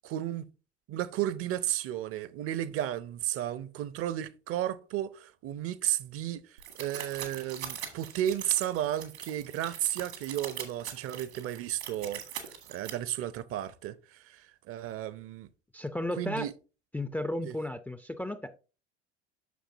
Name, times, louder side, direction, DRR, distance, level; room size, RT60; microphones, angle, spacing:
voice 1, 0.0-0.5 0.9-12.2 12.7-15.5 16.2-16.5 17.4-17.5, right 12 dB, 40° right, 0.7 m, -33 dB
sound 1, 6.6-12.9, right 9 dB, 75° right, 1.7 m, -42 dB
voice 2, 15.7-16.5 16.9-18.6, left 1 dB, 5° left, 0.5 m, -34 dB
9.3 x 6.3 x 2.7 m
figure-of-eight pair, 65°, 34 cm